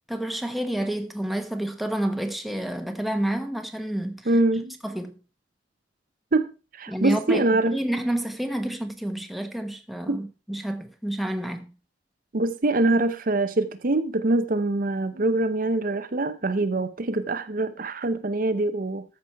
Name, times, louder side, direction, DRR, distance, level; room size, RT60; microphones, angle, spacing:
voice 1, 0.1-4.3 4.8-5.2 6.9-11.7, right 1 dB, ahead, 1.2 m, -29 dB
voice 2, 4.3-4.7 6.3-7.8 10.1-10.2 12.3-19.0, right 2 dB, 50° right, 0.7 m, -24 dB
14.0 x 6.1 x 4.6 m
head